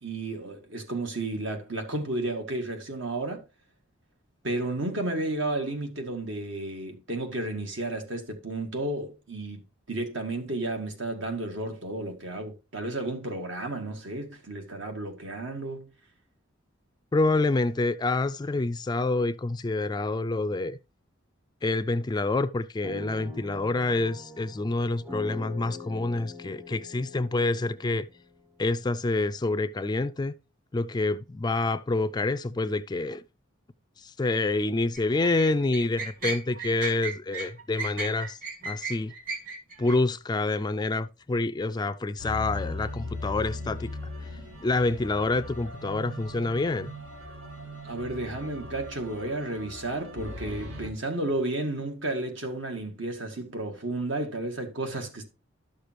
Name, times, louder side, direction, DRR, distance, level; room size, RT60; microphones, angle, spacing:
voice 1, 0.0-3.4 4.4-9.6 9.9-15.9 47.8-55.2, right 2 dB, 70° right, 2.0 m, -32 dB
voice 2, 17.1-20.8 21.6-28.1 28.6-30.3 30.7-33.2 34.0-39.1 39.8-44.3 44.6-46.9, left 2 dB, 20° left, 0.3 m, -27 dB
sound 1, 22.8-28.9, left 3 dB, 15° right, 0.8 m, -44 dB
sound 2, 34.9-40.0, right 4 dB, 45° right, 2.0 m, -35 dB
sound 3, 42.2-50.9, left 1 dB, 90° right, 2.5 m, -39 dB
11.5 x 6.6 x 3.0 m
head